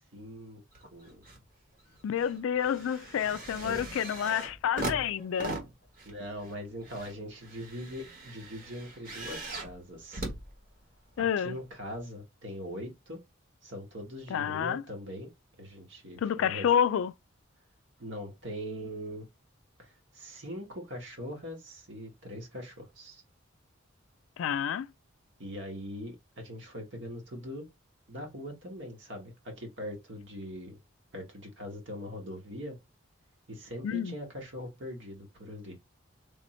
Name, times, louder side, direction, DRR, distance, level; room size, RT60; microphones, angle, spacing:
voice 1, 0.1-0.6 0.9-1.2 3.6-3.9 6.0-10.2 11.2-13.2 13.6-15.3 15.6-16.7 18.0-19.3 19.8-23.2 25.4-27.7 28.1-30.8 31.1-32.8 33.5-35.8, equal, 60° right, 1.4 m, -41 dB
sound 1, 0.7-1.4 1.8-11.2 12.0-12.1, right 2 dB, 40° right, 1.3 m, -41 dB
voice 2, 2.0-5.5 11.2-11.6 14.3-14.8 16.2-17.1 24.4-24.9 33.8-34.1, left 8 dB, 75° left, 0.3 m, -29 dB
3.5 x 2.7 x 4.2 m
head